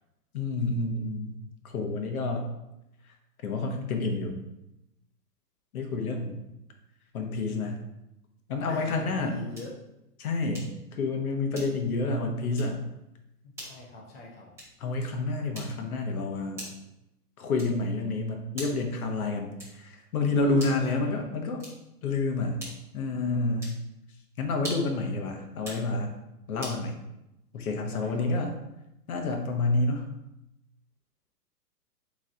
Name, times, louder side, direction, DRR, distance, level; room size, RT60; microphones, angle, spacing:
voice 1, 0.3-1.4 1.7-2.5 3.4-4.3 5.7-6.4 7.1-7.8 8.5-9.4 10.2-10.6 11.0-12.8 14.8-16.6 17.4-21.7 22.0-22.6 22.9-23.8 24.4-26.2 26.5-27.0 27.5-28.5 29.1-30.1, left 3 dB, 60° left, 3 dB, 1.0 m, -29 dB
voice 2, 8.7-9.7 13.4-14.5 20.4-21.2 27.9-28.4, left 2 dB, 40° left, -2 dB, 0.8 m, -43 dB
sound 1, 9.5-9.8 10.5-10.9 11.5-12.0 12.5-12.8 13.5-13.8 14.5-14.9 15.5-15.9 16.5-16.9 17.5-17.9 18.5-18.9 19.6-19.9 20.5-20.9 21.5-22.0 22.6-23.0 23.6-23.9 24.5-25.0 25.5-25.9 26.6-26.8, equal, 5° right, 0.9 m, -43 dB
3.8 x 3.1 x 3.7 m, 0.90 s
hypercardioid pair, 150°, 48 cm